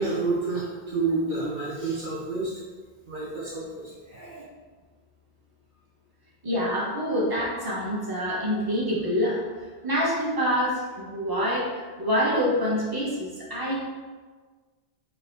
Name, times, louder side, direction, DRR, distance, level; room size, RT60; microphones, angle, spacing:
voice 1, 0.0-2.5 3.1-4.4, right 3 dB, 50° right, -6 dB, 1.4 m, -29 dB
voice 2, 6.4-9.4 9.8-13.8, equal, 20° right, -6 dB, 1.5 m, -26 dB
7.2 x 3.2 x 4.7 m, 1.4 s
omnidirectional pair, 1.1 m